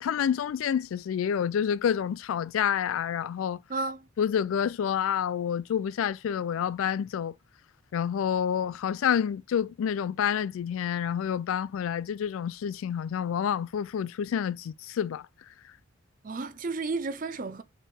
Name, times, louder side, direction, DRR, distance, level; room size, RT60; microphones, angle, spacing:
voice 1, 0.0-3.6 4.2-7.3 7.9-15.3, left 8 dB, 80° left, 0.3 m, -28 dB
voice 2, 3.7-4.1 16.2-17.6, right 3 dB, 40° right, 0.5 m, -32 dB
4.1 x 3.6 x 3.5 m
head